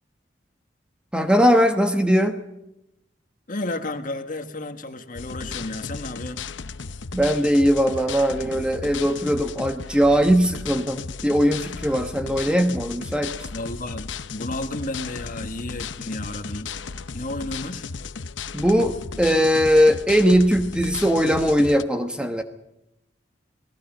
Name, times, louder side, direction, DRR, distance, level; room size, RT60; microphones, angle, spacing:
voice 1, 1.1-2.4 7.1-13.5 18.5-22.4, equal, 5° right, 5 dB, 1.2 m, -20 dB
voice 2, 3.5-6.4 13.5-16.7 17.1-17.9, left 2 dB, 45° left, 6 dB, 1.6 m, -32 dB
sound 1, 5.1-21.8, left 5 dB, 90° left, 0.8 m, -35 dB
28.5 x 18.5 x 5.3 m, 0.86 s
head